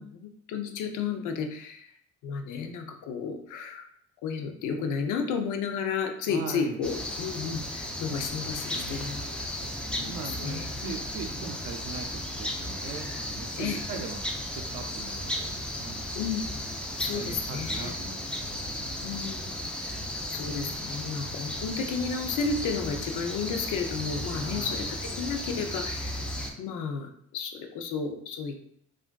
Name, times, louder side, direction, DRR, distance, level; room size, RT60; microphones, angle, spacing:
voice 1, 0.0-1.9 2.2-3.9 4.2-9.4 9.9-10.9 13.6-13.8 16.1-16.4 17.0-17.9 19.0-20.0 20.3-26.3 26.6-28.6, left 5 dB, 90° left, 4 dB, 0.5 m, -33 dB
voice 2, 6.3-6.8 8.7-9.2 9.6-14.2 14.6-16.1 17.1-19.1 24.3-24.9, right 5 dB, 85° right, 3 dB, 0.4 m, -41 dB
sound 1, 6.8-26.5, left 1 dB, 5° left, 0.4 m, -35 dB
3.4 x 2.4 x 2.2 m, 0.67 s
cardioid pair, 90°, 30 cm